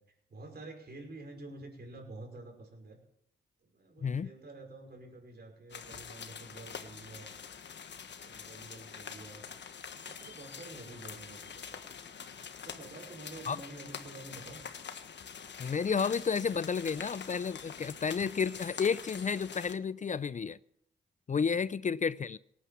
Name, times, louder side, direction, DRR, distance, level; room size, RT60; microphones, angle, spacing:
voice 1, 0.3-3.0 3.6-7.3 8.2-9.4 10.0-11.8 12.6-14.6 21.5-21.6, right 2 dB, 55° right, 5.2 m, -49 dB
sound 1, 5.7-19.7, left 7 dB, 65° left, 1.3 m, -45 dB
voice 2, 15.6-20.6 21.3-22.4, left 6 dB, 40° left, 0.5 m, -31 dB
18.0 x 9.6 x 7.0 m
supercardioid pair, 45°, 20 cm